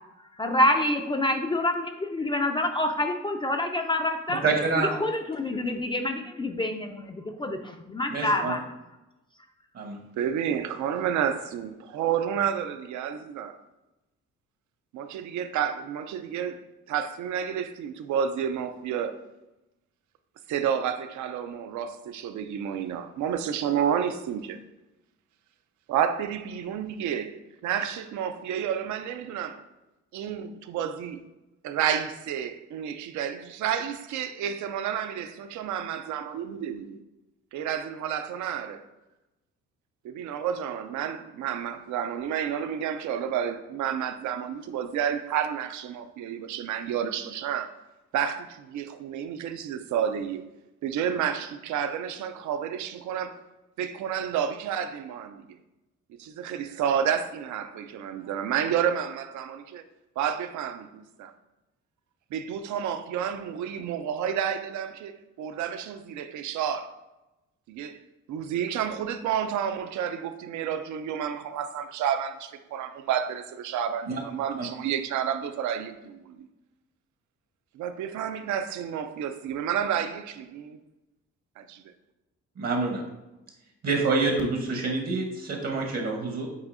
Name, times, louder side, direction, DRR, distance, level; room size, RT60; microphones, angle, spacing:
voice 1, 0.2-4.4 4.9-8.7, left 1 dB, 15° left, 0.4 m, -27 dB
voice 2, 4.4-4.9 8.1-8.5 9.7-10.0 74.1-74.2 82.6-83.0 83.8-86.5, right 3 dB, 50° right, 0.9 m, -26 dB
voice 3, 10.1-13.6 14.9-19.2 20.5-24.6 25.9-29.6 30.1-31.2 31.6-37.0 37.5-38.8 40.0-47.7 48.1-50.4 50.8-53.4 53.8-55.6 56.1-59.8 60.2-60.9 61.2-61.3 62.3-66.9 67.7-68.0 68.3-76.5 77.7-80.8 81.6-81.8, right 8 dB, 75° right, 0.5 m, -30 dB
8.0 x 2.7 x 2.5 m
cardioid pair, 90°, 30 cm